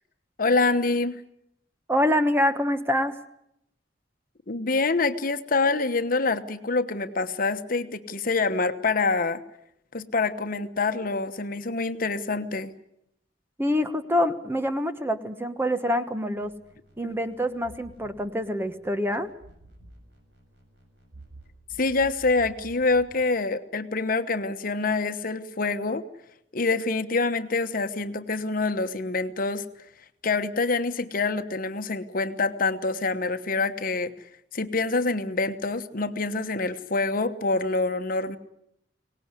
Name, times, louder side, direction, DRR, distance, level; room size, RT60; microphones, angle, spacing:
voice 1, 0.4-1.2 4.5-9.4 9.9-12.7 17.0-17.2 21.8-26.0 26.5-29.6 30.2-34.1 34.5-38.4, left 3 dB, 50° left, 9 dB, 1.2 m, -26 dB
voice 2, 1.9-3.2 13.6-16.5 17.0-19.3, left 1 dB, 15° right, 9 dB, 1.2 m, -25 dB
sound 1, 16.4-23.2, right 2 dB, 85° right, 7.3 m, -51 dB
24.0 x 18.5 x 9.8 m, 0.78 s
head